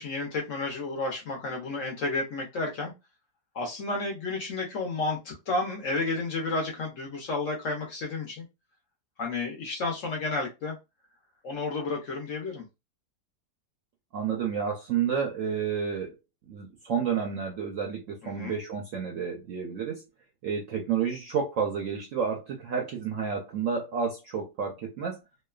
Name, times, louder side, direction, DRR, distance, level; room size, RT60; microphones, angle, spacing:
voice 1, 0.0-2.9 3.5-8.5 9.2-10.8 11.4-12.7 18.2-18.5, left 3 dB, 60° left, 1 dB, 0.9 m, -31 dB
voice 2, 14.1-16.1 16.5-20.0 20.4-25.2, right 6 dB, 70° right, 1 dB, 0.7 m, -30 dB
2.9 x 2.1 x 2.3 m, 0.24 s
omnidirectional pair, 1.8 m